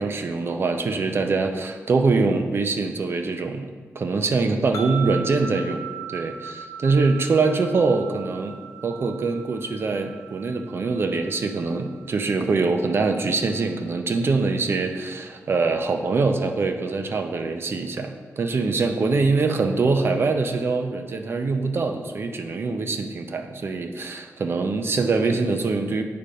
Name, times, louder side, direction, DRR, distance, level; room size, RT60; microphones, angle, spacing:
voice 1, 0.0-3.7 3.9-5.8 6.1-26.0, right 3 dB, 50° right, 6 dB, 0.7 m, -24 dB
sound 1, 4.7-14.0, right 7 dB, 80° left, 0.7 m, -40 dB
8.6 x 4.4 x 5.2 m, 1.5 s
wide cardioid pair, 110°, 5 cm